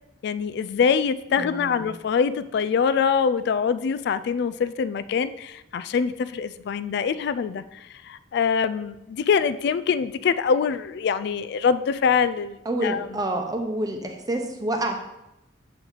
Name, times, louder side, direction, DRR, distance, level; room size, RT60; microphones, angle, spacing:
voice 1, 0.2-7.6 8.0-13.1, left 6 dB, 65° left, 15 dB, 0.3 m, -24 dB
voice 2, 1.4-1.9 12.6-15.0, right 1 dB, 20° right, 3 dB, 0.8 m, -28 dB
7.7 x 4.5 x 4.0 m, 0.91 s
head